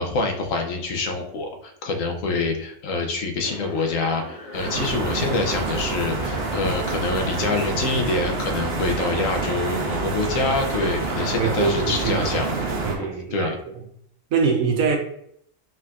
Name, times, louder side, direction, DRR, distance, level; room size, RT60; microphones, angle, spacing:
voice 1, 0.0-12.5 13.3-13.5, left 3 dB, 80° left, 1.2 m, -26 dB
sound 1, 3.4-13.1, left 2 dB, 30° left, 1.0 m, -37 dB
sound 2, 4.5-13.0, right 4 dB, 55° right, 0.9 m, -28 dB
voice 2, 11.2-12.3 12.8-13.5 14.3-15.0, right 5 dB, 85° right, 1.2 m, -23 dB
4.4 x 3.8 x 2.5 m
omnidirectional pair, 1.4 m